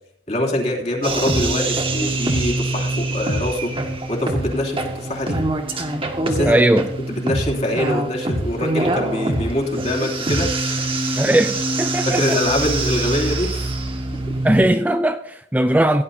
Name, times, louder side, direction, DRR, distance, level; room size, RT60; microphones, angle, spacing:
voice 1, 0.3-3.7 4.1-5.4 6.2-6.6 7.1-10.5 12.0-13.6, left 1 dB, 35° left, 3.0 m, -24 dB
sound 1, 1.0-14.6, right 2 dB, 30° right, 1.7 m, -24 dB
voice 2, 6.5-6.9 11.1-12.4 14.4-16.0, right 1 dB, 10° right, 0.4 m, -18 dB
16.5 x 11.0 x 2.8 m
head